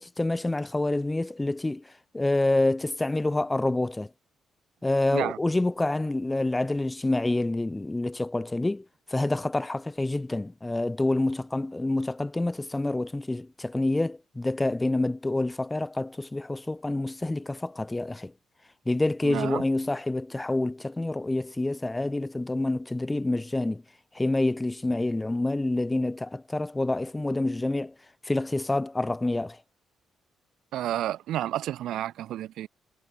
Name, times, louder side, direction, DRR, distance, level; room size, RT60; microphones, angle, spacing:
voice 1, 0.0-4.1 4.8-18.3 18.9-23.8 24.1-27.9 28.2-29.6, left 2 dB, 15° left, 0.6 m, -27 dB
voice 2, 19.2-19.6 30.7-32.7, right 12 dB, 80° right, 0.6 m, -30 dB
cardioid pair, 90°, 0 cm